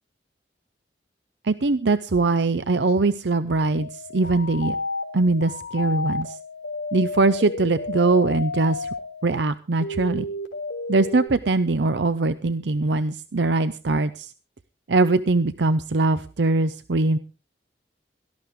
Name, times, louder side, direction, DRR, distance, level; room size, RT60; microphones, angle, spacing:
voice 1, 1.4-4.8 5.1-6.4 6.9-8.9 9.2-10.3 10.9-14.3 14.9-17.2, right 3 dB, 70° right, 13 dB, 0.6 m, -22 dB
sound 1, 3.7-9.4 9.8-11.3, left 2 dB, 80° left, 3.9 m, -32 dB
17.5 x 12.5 x 3.6 m, 0.32 s
head